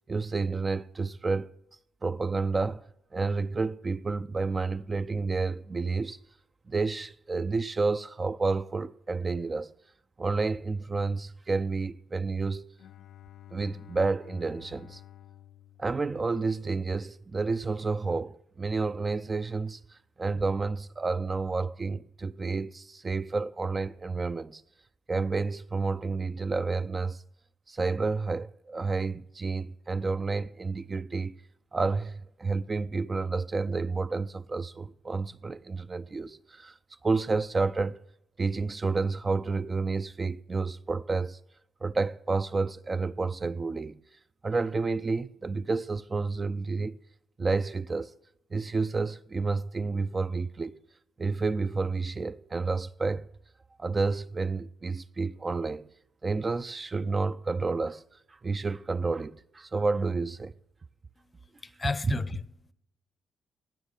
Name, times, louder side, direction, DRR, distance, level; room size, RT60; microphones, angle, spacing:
voice 1, 0.1-1.5 2.0-2.8 3.1-6.2 6.7-9.7 10.2-12.8 13.5-15.0 15.8-24.6 25.1-27.2 27.7-31.4 31.7-36.8 37.0-38.0 38.4-41.4 41.8-44.0 44.4-47.0 47.4-48.1 48.5-50.8 51.2-53.3 53.8-55.9 56.2-58.0 58.3-60.5, right 4 dB, 30° right, 0.4 m, -30 dB
Bowed string instrument, 12.8-16.7, left 11 dB, 75° left, 0.4 m, -51 dB
voice 2, 61.2-62.7, left 3 dB, 30° left, 0.7 m, -34 dB
18.0 x 6.3 x 8.9 m
cardioid pair, 90°, 0 cm